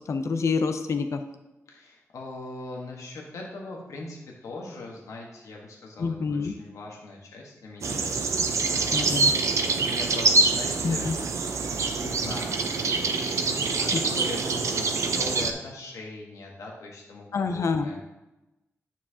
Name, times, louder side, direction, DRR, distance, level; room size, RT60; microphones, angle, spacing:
voice 1, 0.1-1.2 6.0-6.5 8.9-9.3 10.8-11.1 13.8-14.0 17.3-18.0, left 4 dB, 65° left, 7 dB, 0.6 m, -27 dB
voice 2, 1.7-8.4 8.7-9.3 9.7-11.2 12.0-12.6 13.2-18.0, left 2 dB, 85° left, -1 dB, 1.4 m, -41 dB
sound 1, 7.8-15.5, right 3 dB, 75° right, 0.8 m, -25 dB
9.3 x 7.2 x 2.9 m, 0.98 s
cardioid pair, 55°, 5 cm